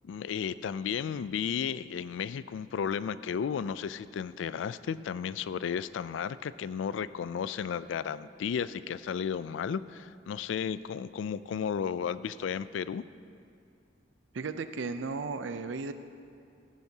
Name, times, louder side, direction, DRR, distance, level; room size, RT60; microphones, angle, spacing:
voice 1, 0.0-13.0, left 7 dB, 80° left, 16 dB, 0.3 m, -33 dB
voice 2, 14.3-15.9, right 4 dB, 75° right, 10 dB, 0.5 m, -35 dB
15.5 x 10.5 x 2.8 m, 2.5 s
head